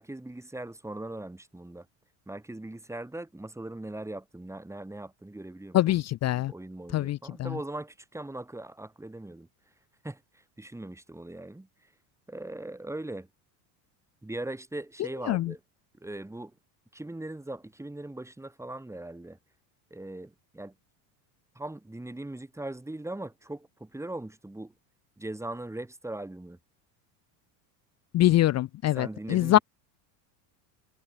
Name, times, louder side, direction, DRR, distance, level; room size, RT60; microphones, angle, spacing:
voice 1, 0.0-1.9 2.3-5.9 6.5-9.5 10.0-10.2 10.6-11.7 12.3-13.3 14.2-15.6 16.0-16.5 16.9-19.4 19.9-20.7 21.5-24.7 25.2-26.6 29.0-29.6, right 1 dB, 5° right, 4.8 m, -40 dB
voice 2, 5.7-6.5 6.9-7.6 15.3-15.5 28.1-29.6, left 14 dB, 35° left, 0.6 m, -24 dB
supercardioid pair, 130°, 50 cm